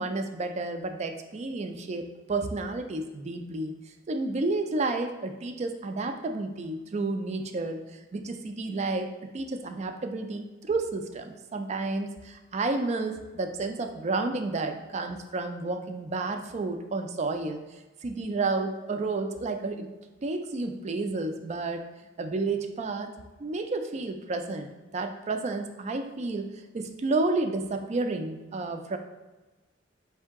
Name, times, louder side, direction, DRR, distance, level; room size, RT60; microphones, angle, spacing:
voice 1, 0.0-3.7 4.1-19.9 20.2-21.8 22.2-23.1 23.4-26.5 26.7-29.0, right 3 dB, 35° right, 6 dB, 0.4 m, -31 dB
4.5 x 2.7 x 3.5 m, 1.2 s
head